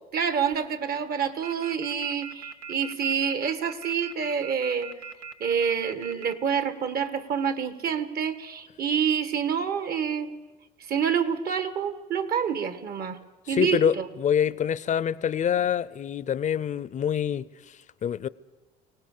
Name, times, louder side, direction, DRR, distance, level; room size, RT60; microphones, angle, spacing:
voice 1, 0.1-4.9 5.4-10.3 10.9-13.2 13.5-14.1, right 7 dB, 55° right, 1.6 m, -27 dB
sound 1, 1.4-6.3, right 6 dB, 85° right, 1.0 m, -39 dB
voice 2, 13.5-18.3, left 8 dB, 40° left, 0.7 m, -26 dB
24.0 x 18.0 x 6.7 m
supercardioid pair, 90°, 19 cm